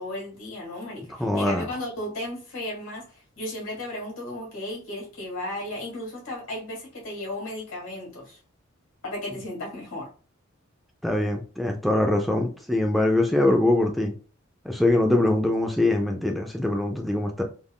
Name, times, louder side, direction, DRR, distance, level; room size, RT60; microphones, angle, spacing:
voice 1, 0.0-3.0 3.3-8.4 9.0-10.1, left 1 dB, 90° left, 1.6 m, -34 dB
voice 2, 1.2-1.7 11.0-14.1 14.7-17.4, left 1 dB, ahead, 0.3 m, -23 dB
3.5 x 2.3 x 2.2 m
head